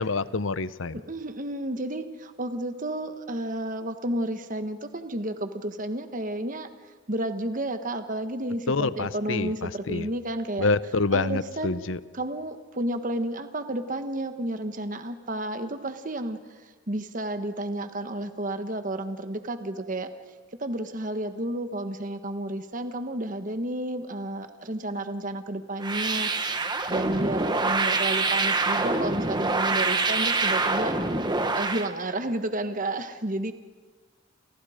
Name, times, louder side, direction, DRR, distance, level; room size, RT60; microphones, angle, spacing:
voice 1, 0.0-1.0 8.7-10.1 10.6-12.0, left 3 dB, 70° left, 16 dB, 0.8 m, -27 dB
voice 2, 0.9-6.7 7.1-10.7 11.1-11.9 12.1-20.1 20.6-26.6 26.9-30.9 31.5-33.5, right 1 dB, 40° right, 8 dB, 1.3 m, -31 dB
sound 1, 25.8-31.9, right 3 dB, 20° right, 1.4 m, -25 dB
30.0 x 28.5 x 5.1 m, 1.4 s
head